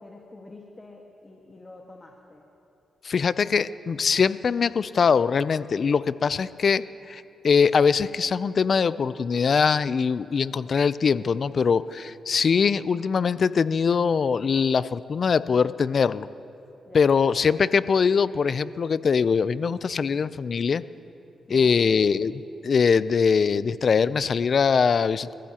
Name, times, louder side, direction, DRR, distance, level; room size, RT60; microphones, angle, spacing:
voice 1, 0.0-2.4 16.8-17.3 21.5-21.8, left 2 dB, 30° left, 0 dB, 1.7 m, -47 dB
voice 2, 3.0-16.3 16.9-20.8 21.5-25.3, left 6 dB, 55° left, 16 dB, 0.5 m, -22 dB
28.5 x 15.0 x 2.9 m, 2.8 s
cardioid pair, 65°, 0 cm